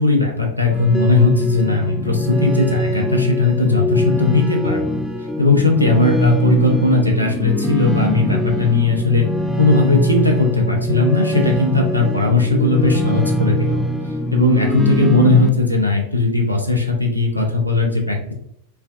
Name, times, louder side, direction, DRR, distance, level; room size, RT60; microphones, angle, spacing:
voice 1, 0.0-4.8 5.4-9.2 9.6-13.8 14.3-18.3, left 3 dB, 90° right, 0 dB, 0.5 m, -17 dB
sound 1, 0.7-15.5, equal, 5° left, 0.3 m, -22 dB
3.2 x 2.2 x 2.4 m, 0.71 s
figure-of-eight pair, 90°, 0 cm